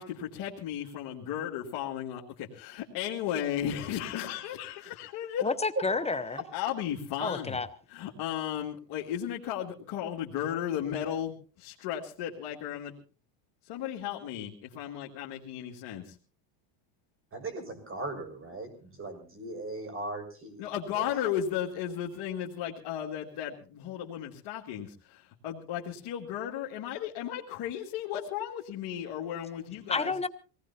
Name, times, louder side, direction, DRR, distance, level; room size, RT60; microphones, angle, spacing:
voice 1, 0.0-5.5 6.5-7.6 7.9-12.9 13.7-16.2 20.6-30.1, left 10 dB, 55° left, -2 dB, 2.4 m, -35 dB
voice 2, 5.4-6.4 7.2-7.7 29.9-30.3, left 4 dB, 15° left, 11 dB, 0.9 m, -30 dB
voice 3, 17.3-21.1, right 2 dB, 25° right, 7 dB, 6.0 m, -39 dB
24.5 x 18.5 x 2.8 m, 0.37 s
supercardioid pair, 125°, 49 cm